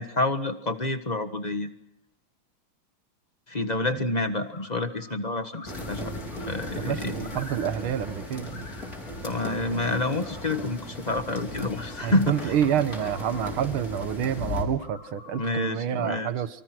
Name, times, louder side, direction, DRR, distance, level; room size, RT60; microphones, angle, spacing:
voice 1, 0.0-1.7 3.5-6.1 6.5-7.4 9.2-12.5 15.4-16.3, left 2 dB, 20° left, 8 dB, 1.4 m, -28 dB
sound 1, 4.4-5.2 5.4-8.1 8.3-9.2 9.7-10.7 11.6-13.5 14.6-15.7, left 3 dB, 85° left, 5.5 m, -48 dB
sound 2, 5.7-14.7, left 1 dB, 45° left, 5.1 m, -37 dB
voice 2, 6.9-8.7 12.0-16.5, right 9 dB, 90° right, 12 dB, 2.0 m, -28 dB
28.0 x 25.0 x 6.2 m, 0.76 s
omnidirectional pair, 2.3 m